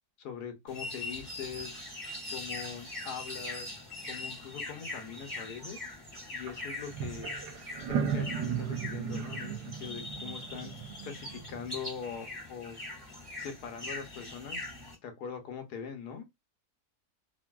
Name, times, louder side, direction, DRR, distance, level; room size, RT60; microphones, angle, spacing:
voice 1, 0.2-1.8 2.3-3.7 4.1-5.8 6.3-7.3 7.9-10.7 11.0-12.8 13.4-14.6 15.0-16.2, left 7 dB, 75° left, 1.3 m, -42 dB
sound 1, 0.7-14.9, left 2 dB, 10° left, 1.7 m, -42 dB
sound 2, 6.5-6.6 6.9-11.8, right 7 dB, 80° right, 1.3 m, -36 dB
3.1 x 2.6 x 2.2 m
omnidirectional pair, 1.8 m